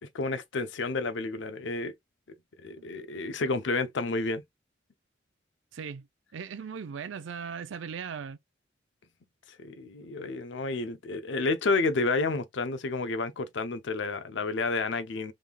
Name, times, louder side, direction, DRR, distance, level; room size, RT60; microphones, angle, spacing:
voice 1, 0.0-1.9 2.3-2.4 2.6-4.4 9.6-15.3, left 3 dB, 75° left, 0.6 m, -30 dB
voice 2, 5.7-6.1 6.3-8.4, right 6 dB, 85° right, 0.4 m, -38 dB
3.6 x 3.2 x 2.2 m
head